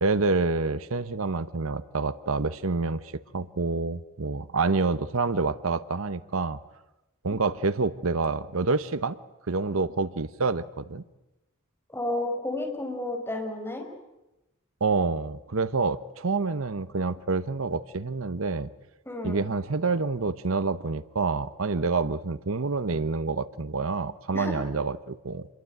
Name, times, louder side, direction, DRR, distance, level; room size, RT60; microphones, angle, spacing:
voice 1, 0.0-3.0 3.3-6.6 7.2-9.2 9.5-11.0 14.8-18.7 19.2-25.5, right 3 dB, 75° right, 14 dB, 0.9 m, -27 dB
voice 2, 11.9-13.9 19.1-19.4 24.3-24.6, left 1 dB, 10° left, 2 dB, 5.2 m, -31 dB
27.5 x 22.0 x 9.2 m, 0.98 s
head